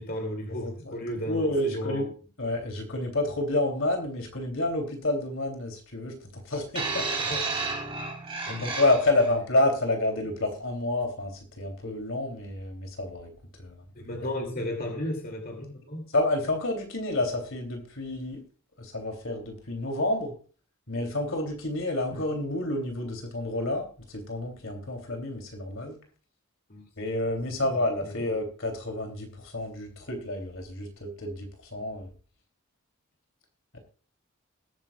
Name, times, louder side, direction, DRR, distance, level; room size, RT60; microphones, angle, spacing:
voice 1, 0.0-2.1 7.2-7.8 8.5-8.6 13.9-16.1 22.1-22.2 26.7-26.8 28.0-28.2, left 1 dB, 40° left, 2 dB, 2.8 m, -34 dB
voice 2, 0.6-2.1 2.4-7.1 8.5-13.3 13.6-13.9 14.4-14.5 16.1-18.4 18.8-20.3 20.9-26.0 27.0-32.1, left 2 dB, 60° left, 4 dB, 3.1 m, -29 dB
sound 1, 6.7-9.3 10.2-10.4, right 4 dB, 25° right, 3.8 m, -32 dB
20.5 x 9.5 x 2.4 m, 0.38 s
head